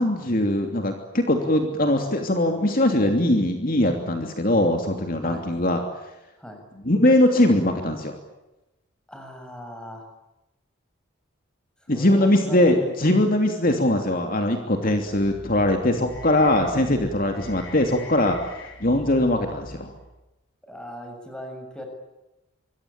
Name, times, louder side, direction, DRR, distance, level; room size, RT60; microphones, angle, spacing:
voice 1, 0.0-5.8 6.8-8.2 11.9-18.4 18.8-19.9, left 1 dB, 45° left, 4 dB, 3.0 m, -21 dB
voice 2, 9.1-10.1 11.9-12.9 17.2-17.3 20.7-21.9, equal, 5° left, 3 dB, 6.9 m, -38 dB
sound 1, 14.9-20.2, left 1 dB, 65° left, 3.9 m, -43 dB
26.0 x 23.5 x 8.9 m, 0.97 s
head